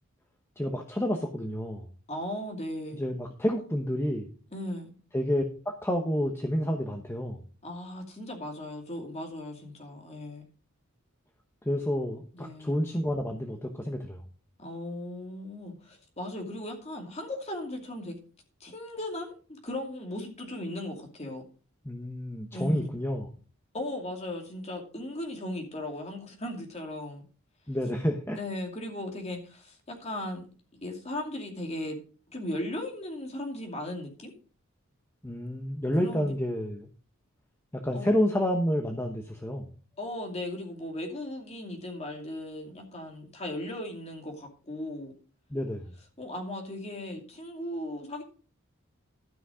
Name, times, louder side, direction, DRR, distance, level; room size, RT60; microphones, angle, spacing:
voice 1, 0.6-1.8 2.9-4.3 5.1-7.4 11.6-14.2 21.8-23.3 27.7-28.4 35.2-36.9 37.7-39.7 45.5-45.9, equal, 10° left, 3 dB, 1.0 m, -29 dB
voice 2, 2.1-3.0 4.5-4.9 7.6-10.4 12.3-12.8 14.6-18.1 18.6-21.4 22.5-22.9 23.7-27.2 28.4-30.5 30.8-32.0 32.3-34.3 36.0-36.3 37.9-38.1 40.0-45.1 46.2-48.2, left 1 dB, 30° left, 2 dB, 2.6 m, -37 dB
12.5 x 6.0 x 5.0 m, 0.38 s
head